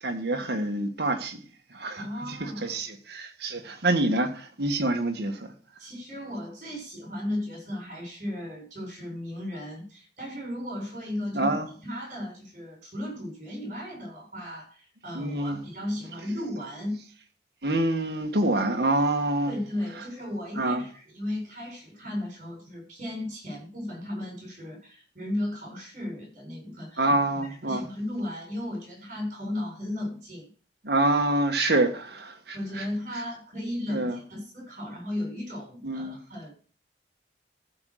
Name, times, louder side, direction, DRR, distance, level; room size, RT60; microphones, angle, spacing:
voice 1, 0.0-1.4 1.7-5.4 11.3-11.7 15.1-15.6 17.6-19.5 20.6-20.8 27.0-27.8 30.8-32.8 33.9-34.2 35.8-36.2, right 2 dB, 65° right, 1.6 m, -26 dB
voice 2, 1.9-2.8 5.8-11.5 11.8-17.0 19.5-27.1 27.4-30.5 32.5-36.5, left 1 dB, 45° right, 7.6 m, -35 dB
14.5 x 5.3 x 6.3 m
head